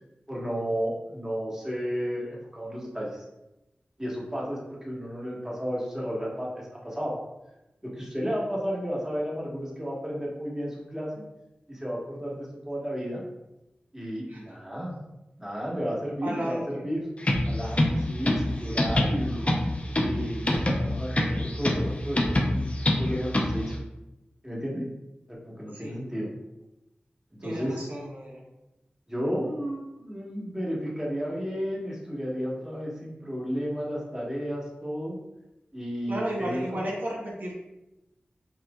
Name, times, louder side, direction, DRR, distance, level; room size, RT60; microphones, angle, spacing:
voice 1, 0.3-3.3 4.0-7.1 7.8-11.2 11.7-13.2 13.9-15.0 15.4-17.1 17.4-19.5 20.0-23.8 24.4-24.9 25.4-26.3 27.4-27.9 29.1-35.2 35.7-36.9, equal, 15° right, -5 dB, 1.5 m, -33 dB
voice 2, 16.2-16.8 25.7-26.1 27.4-28.4 36.1-37.5, equal, 60° right, -3 dB, 1.2 m, -33 dB
sound 1, 17.2-23.7, left 1 dB, 40° left, 0.7 m, -26 dB
5.8 x 2.5 x 2.4 m, 0.95 s
cardioid pair, 45°, 4 cm